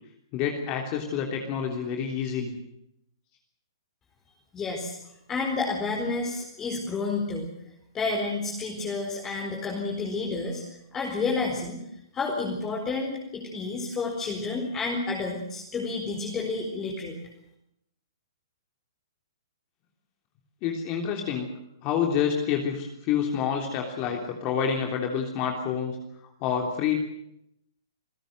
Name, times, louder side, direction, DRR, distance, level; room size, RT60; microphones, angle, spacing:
voice 1, 0.3-2.5 20.6-21.5 21.8-26.0 26.2-27.0, left 7 dB, 35° left, 2 dB, 3.4 m, -28 dB
voice 2, 4.5-5.0 5.3-7.5 7.9-10.6 10.9-11.8 12.1-17.2, left 3 dB, 20° left, -1 dB, 4.6 m, -30 dB
28.0 x 16.5 x 7.9 m, 0.80 s
hypercardioid pair, 135°, 2 cm